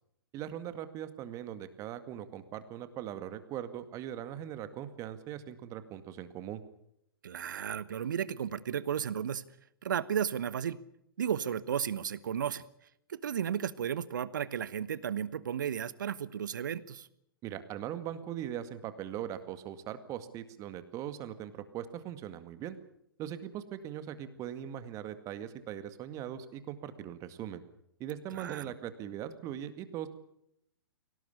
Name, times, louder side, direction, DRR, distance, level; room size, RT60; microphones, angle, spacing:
voice 1, 0.3-6.6 17.4-22.8 23.2-27.6 28.0-30.1, right 10 dB, 25° right, 11 dB, 2.1 m, -40 dB
voice 2, 7.2-9.4 9.8-10.8 11.2-12.6 13.1-17.1 28.3-28.7, right 8 dB, 60° right, 17 dB, 1.2 m, -34 dB
24.0 x 18.0 x 8.5 m, 0.76 s
figure-of-eight pair, 115°, 12 cm